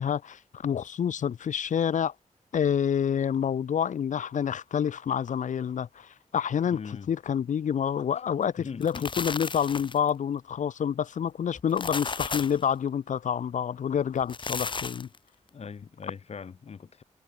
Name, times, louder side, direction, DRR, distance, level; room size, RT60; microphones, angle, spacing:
voice 1, 0.0-2.1 2.5-15.1, left 8 dB, 85° left, 2.9 m, -28 dB
voice 2, 6.7-7.1 8.6-9.3 15.5-17.0, left 6 dB, 60° left, 6.2 m, -41 dB
sound 1, 8.6-10.1 11.5-12.6 14.2-15.2, left 4 dB, 40° left, 2.4 m, -34 dB
wide cardioid pair, 105°, 12 cm